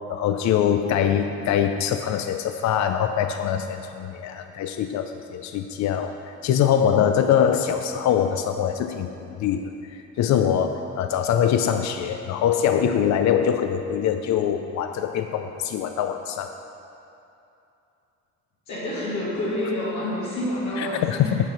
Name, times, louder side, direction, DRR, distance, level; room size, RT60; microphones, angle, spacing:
voice 1, 0.1-16.6 20.8-21.4, left 9 dB, 65° left, 7 dB, 0.5 m, -23 dB
voice 2, 18.7-21.4, left 1 dB, 85° left, -8 dB, 1.6 m, -28 dB
9.2 x 5.9 x 5.3 m, 2.8 s
cardioid pair, 90°, 30 cm